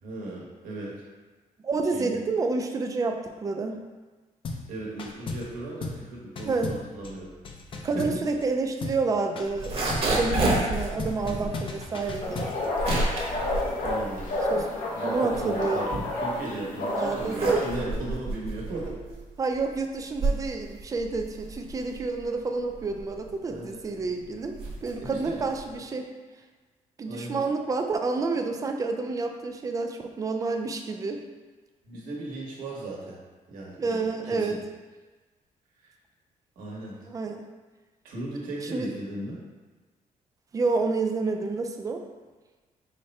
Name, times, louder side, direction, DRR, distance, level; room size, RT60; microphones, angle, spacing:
voice 1, 0.0-1.0 1.9-2.1 4.7-7.4 7.9-8.2 13.8-14.4 14.9-19.0 23.5-23.8 25.0-25.4 27.0-27.4 31.8-33.2 33.5-34.6 35.8-35.9 36.6-37.0 38.0-39.4, right 2 dB, 85° right, -3 dB, 1.2 m, -36 dB
voice 2, 1.6-3.8 6.5-6.7 7.8-12.6 14.5-14.7 15.0-15.8 17.0-17.6 19.4-26.1 27.0-31.2 33.8-34.6 37.1-37.4 38.7-38.9 40.5-42.0, right 3 dB, 25° right, 4 dB, 0.3 m, -29 dB
sound 1, 4.4-4.7 5.0-5.5 5.8-6.1 6.4-8.5 8.8-9.1 9.4-10.2 11.0-13.2, left 3 dB, 40° left, 0.4 m, -36 dB
sound 2, 9.4-14.7 15.1-16.5 17.0-25.8, right 2 dB, 45° right, 1.0 m, -31 dB
sound 3, 12.2-17.7, left 2 dB, 70° left, 0.8 m, -30 dB
4.9 x 2.2 x 4.1 m, 1.3 s
cardioid pair, 145°, 14 cm